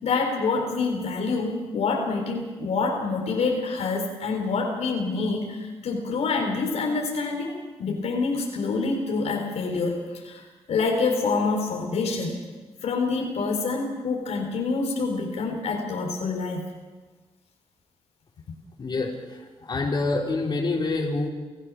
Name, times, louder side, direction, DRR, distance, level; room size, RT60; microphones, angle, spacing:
voice 1, 0.0-10.4 10.7-12.4 12.8-16.7, left 4 dB, 80° left, 1 dB, 4.0 m, -26 dB
voice 2, 18.8-21.3, left 3 dB, 40° left, -1 dB, 4.5 m, -27 dB
29.0 x 14.5 x 6.3 m, 1.3 s
cardioid pair, 95°, 11 cm